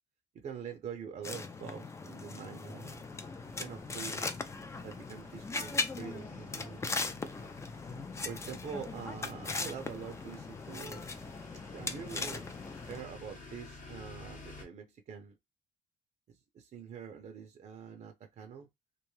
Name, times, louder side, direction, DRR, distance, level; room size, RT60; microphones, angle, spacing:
voice 1, 0.4-3.1 3.6-4.4 4.8-7.3 8.2-11.0 11.7-12.4 12.8-15.4 16.5-18.7, right 7 dB, 45° right, 0.5 m, -45 dB
sound 1, 1.2-13.0, left 3 dB, 15° left, 0.4 m, -39 dB
sound 2, 2.8-14.7, left 3 dB, 50° left, 0.9 m, -53 dB
2.5 x 2.3 x 3.1 m
cardioid pair, 110°, 17 cm